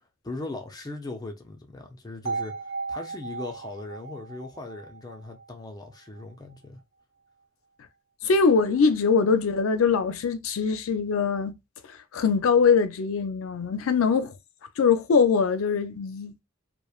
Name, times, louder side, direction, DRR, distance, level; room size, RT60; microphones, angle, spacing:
voice 1, 0.2-2.5 2.9-6.8, left 2 dB, 20° left, 0.5 m, -39 dB
sound 1, 2.3-6.2, right 4 dB, 70° right, 0.7 m, -36 dB
voice 2, 8.2-11.5 12.1-14.4 14.8-16.3, left 5 dB, 85° left, 0.5 m, -22 dB
3.1 x 2.1 x 2.3 m
head